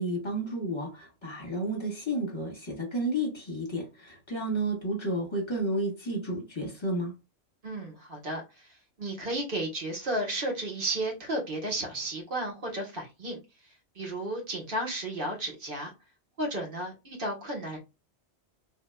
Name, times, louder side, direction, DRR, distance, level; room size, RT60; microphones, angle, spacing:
voice 1, 0.0-7.1, right 1 dB, 25° left, 1.4 m, -31 dB
voice 2, 7.6-8.7 9.0-13.4 13.9-15.9 16.4-17.8, right 1 dB, 50° right, 1.5 m, -33 dB
3.4 x 2.9 x 2.3 m
omnidirectional pair, 1.2 m